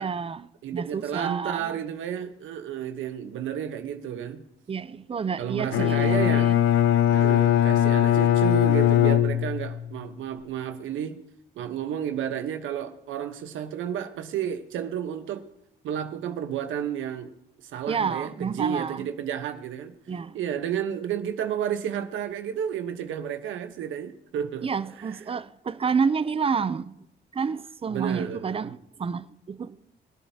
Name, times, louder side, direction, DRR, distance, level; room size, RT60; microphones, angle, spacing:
voice 1, 0.0-1.7 4.7-6.5 17.9-19.0 20.1-20.4 24.6-26.9 27.3-29.8, right 6 dB, 30° right, 0.6 m, -29 dB
voice 2, 0.6-4.4 5.4-6.5 7.1-11.2 11.6-15.4 15.8-17.3 17.7-19.9 20.3-24.7 25.0-25.2 27.9-28.7, right 9 dB, 80° right, 1.1 m, -31 dB
Bowed string instrument, 5.7-9.9, left 11 dB, 85° left, 0.6 m, -20 dB
24.5 x 8.9 x 2.9 m
cardioid pair, 90°, 20 cm